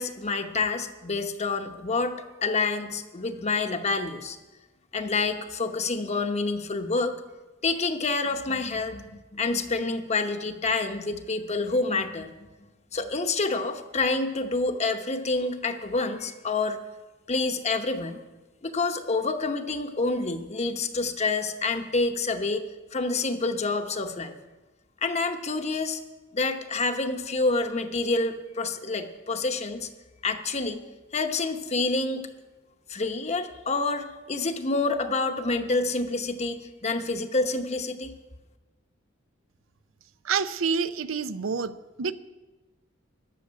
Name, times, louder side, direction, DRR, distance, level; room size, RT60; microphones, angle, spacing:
voice 1, 0.0-4.4 4.9-7.2 7.6-12.3 12.9-16.8 17.3-18.2 18.6-22.6 22.9-24.3 25.0-26.0 26.3-29.9 30.2-30.8 31.1-32.3 32.9-38.1, left 3 dB, 35° left, 7 dB, 0.9 m, -28 dB
voice 2, 40.2-42.1, right 5 dB, 75° right, 13 dB, 0.6 m, -28 dB
13.5 x 6.7 x 9.9 m, 1.2 s
head